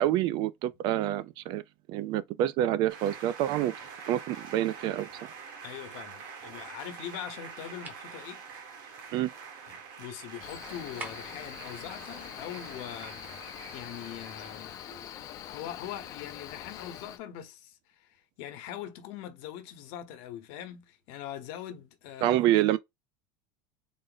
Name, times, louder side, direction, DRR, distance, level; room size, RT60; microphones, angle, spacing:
voice 1, 0.0-1.6 1.9-3.7 4.1-5.1 9.1-9.3 22.2-22.8, right 13 dB, 45° right, 0.3 m, -27 dB
sound 1, 2.9-15.0, right 6 dB, 70° right, 1.4 m, -46 dB
voice 2, 5.6-8.4 9.7-13.2 13.7-14.8 15.5-22.4, left 10 dB, 55° left, 0.9 m, -42 dB
sound 2, 7.8-8.1 11.0-11.5, right 2 dB, 15° right, 0.7 m, -42 dB
Cricket, 10.4-17.2, left 10 dB, 30° left, 0.5 m, -44 dB
3.9 x 2.1 x 3.8 m
cardioid pair, 160°, 11 cm